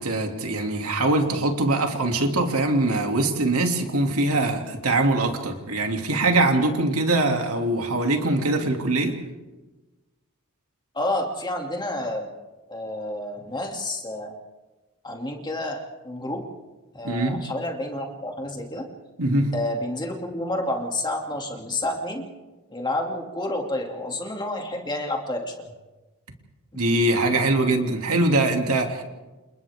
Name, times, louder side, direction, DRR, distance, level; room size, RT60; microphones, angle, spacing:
voice 1, 0.0-9.2 17.0-17.4 19.2-19.5 26.7-29.0, right 2 dB, 75° right, 3 dB, 2.7 m, -22 dB
voice 2, 10.9-12.3 12.7-14.3 15.0-16.4 16.9-18.8 19.5-22.2 22.7-25.5, left 1 dB, 20° left, 1 dB, 2.6 m, -29 dB
29.0 x 28.0 x 3.7 m, 1.2 s
head